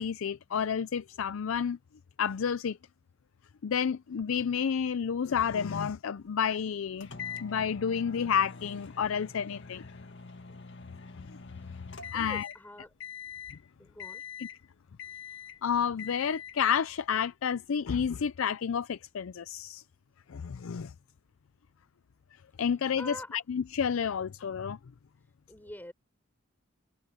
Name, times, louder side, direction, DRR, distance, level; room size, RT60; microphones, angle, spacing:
voice 1, 0.0-1.8 2.2-2.8 3.6-7.1 7.4-10.0 11.3-11.4 12.1-12.5 14.4-14.5 15.6-19.8 20.3-20.9 22.6-24.8, left 7 dB, 75° left, 0.4 m, -30 dB
sound 1, 7.0-12.7 13.0-13.6 14.0-14.6 15.0-15.6 16.0-16.6, left 6 dB, 60° left, 2.0 m, -44 dB
voice 2, 12.1-12.9 13.8-14.2 22.6-23.4 25.2-25.9, left 1 dB, 10° left, 6.3 m, -46 dB
head